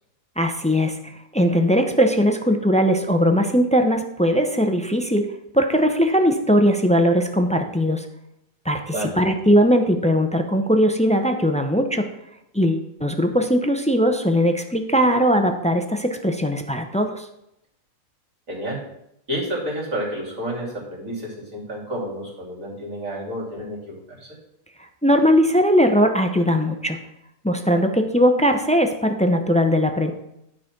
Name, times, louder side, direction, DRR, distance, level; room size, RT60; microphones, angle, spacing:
voice 1, 0.4-5.2 5.5-8.1 8.6-12.1 12.5-17.2 25.0-27.0 27.4-30.1, equal, 10° left, 5 dB, 0.5 m, -19 dB
voice 2, 18.5-18.9 19.3-24.4, equal, 65° right, -3 dB, 3.3 m, -30 dB
11.5 x 5.0 x 6.0 m, 0.80 s
omnidirectional pair, 1.5 m